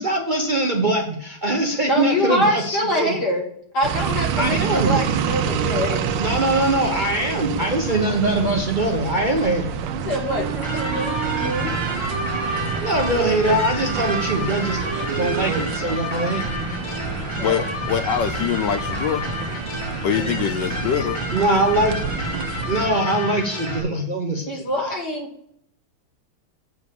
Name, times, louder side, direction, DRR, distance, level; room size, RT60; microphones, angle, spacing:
voice 1, 0.0-3.1 4.4-5.0 6.2-9.8 12.7-14.8 15.2-16.5 21.3-22.0 22.7-24.7, right 1 dB, 50° right, 2 dB, 0.5 m, -22 dB
voice 2, 1.9-3.5 3.7-6.1 9.9-11.7 17.4-17.6 24.5-25.3, equal, 55° left, 1 dB, 1.9 m, -24 dB
sound 1, 3.8-22.9, right 7 dB, 70° right, 1.3 m, -28 dB
sound 2, 9.9-15.4, right 11 dB, 85° right, 1.6 m, -31 dB
sound 3, 10.6-23.8, left 1 dB, 15° left, 1.8 m, -30 dB
voice 3, 17.4-19.2 20.0-21.2, left 8 dB, 70° left, 9 dB, 1.1 m, -24 dB
7.9 x 5.3 x 6.7 m, 0.69 s
omnidirectional pair, 2.3 m